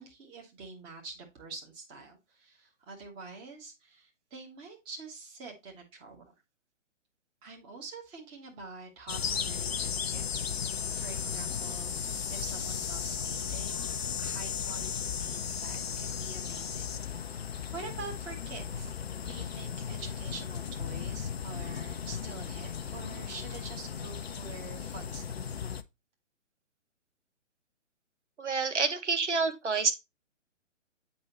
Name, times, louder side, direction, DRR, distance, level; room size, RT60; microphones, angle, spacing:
voice 1, 0.0-6.2 7.4-10.6 10.9-13.9 14.2-18.9 19.2-25.6, right 4 dB, 15° right, 1.1 m, -46 dB
Crickets Birds Summer Ambient, 9.1-25.8, left 7 dB, 55° left, 0.6 m, -35 dB
voice 2, 28.4-29.9, right 4 dB, 65° right, 1.2 m, -28 dB
7.7 x 5.0 x 2.9 m
figure-of-eight pair, 130°, 38 cm